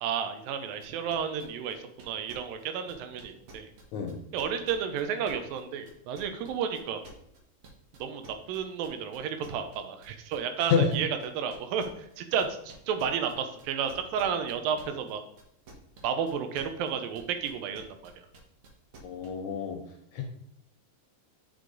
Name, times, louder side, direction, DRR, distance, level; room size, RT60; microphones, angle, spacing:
voice 1, 0.0-3.7 4.3-7.0 8.0-11.1 11.3-15.2 16.0-18.3, right 7 dB, 80° right, 8 dB, 2.5 m, -32 dB
sound 1, 0.8-5.6 5.9-15.1 15.4-19.3, right 3 dB, 60° right, 1.5 m, -51 dB
voice 2, 19.0-19.8 20.1-20.2, left 6 dB, 75° left, 2 dB, 1.8 m, -27 dB
8.2 x 5.0 x 3.9 m, 0.75 s
omnidirectional pair, 4.1 m